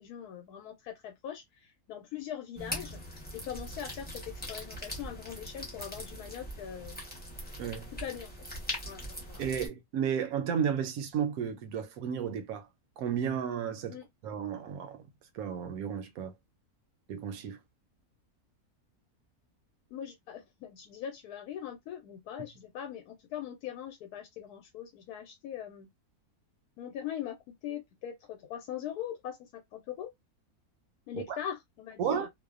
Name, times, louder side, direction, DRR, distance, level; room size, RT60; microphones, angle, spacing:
voice 1, 0.0-3.0 3.3-7.0 8.0-8.3 8.9-9.0 9.3-9.4 13.9-14.1 19.9-25.9 26.8-30.1 31.1-32.3, left 10 dB, 90° left, 1.1 m, -41 dB
sound 1, 2.6-9.7, equal, 10° left, 0.5 m, -41 dB
voice 2, 7.6-7.9 9.4-12.7 13.0-15.1 15.3-16.3 17.1-17.6 31.1-31.4 32.0-32.3, right 8 dB, 75° right, 1.0 m, -33 dB
2.6 x 2.1 x 2.4 m
omnidirectional pair, 1.6 m